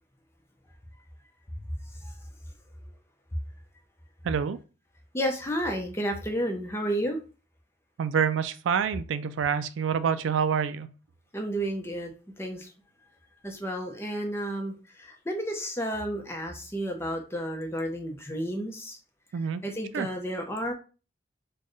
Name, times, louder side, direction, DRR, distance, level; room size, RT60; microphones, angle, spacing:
voice 1, 4.2-4.6 8.0-10.9 19.3-19.6 19.9-20.1, right 7 dB, 85° right, 0.3 m, -27 dB
voice 2, 5.1-7.2 11.3-12.1 12.4-12.7 13.4-19.0 19.6-20.7, equal, 15° left, 0.7 m, -31 dB
4.3 x 2.3 x 3.1 m
head